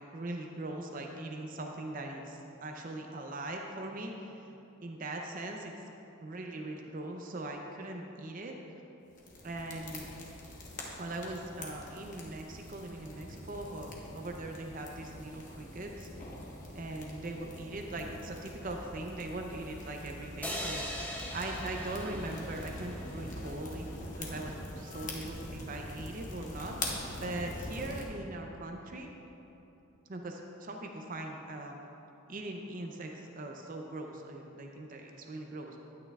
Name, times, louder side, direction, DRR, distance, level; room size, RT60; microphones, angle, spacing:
voice 1, 0.0-4.3 4.8-5.7 6.2-8.5 9.4-10.1 11.0-16.1 16.7-20.8 21.3-23.9 24.2-26.8 27.2-29.1 30.1-31.8 32.3-35.8, right 2 dB, 40° right, 2 dB, 0.5 m, -40 dB
sound 1, 9.1-28.1, left 1 dB, 35° left, 1.0 m, -44 dB
sound 2, 18.6-25.1, left 1 dB, 70° left, 1.0 m, -50 dB
sound 3, 20.4-23.7, left 1 dB, 5° left, 0.6 m, -41 dB
12.0 x 8.7 x 2.4 m, 3.0 s
head